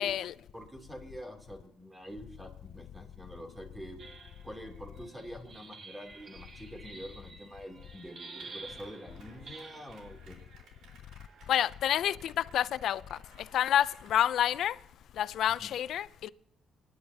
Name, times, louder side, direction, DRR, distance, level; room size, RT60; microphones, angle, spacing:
voice 1, 0.0-0.3 11.5-13.2 13.5-14.8 15.2-16.3, left 11 dB, 75° left, 0.4 m, -28 dB
voice 2, 0.5-4.1 4.4-10.4 15.6-15.7, equal, 10° right, 2.9 m, -46 dB
sound 1, 4.0-10.2 11.1-11.7, right 4 dB, 45° right, 2.0 m, -50 dB
Clapping, 8.1-14.6, right 3 dB, 75° right, 4.0 m, -59 dB
29.0 x 10.5 x 2.8 m
cardioid pair, 90°, 0 cm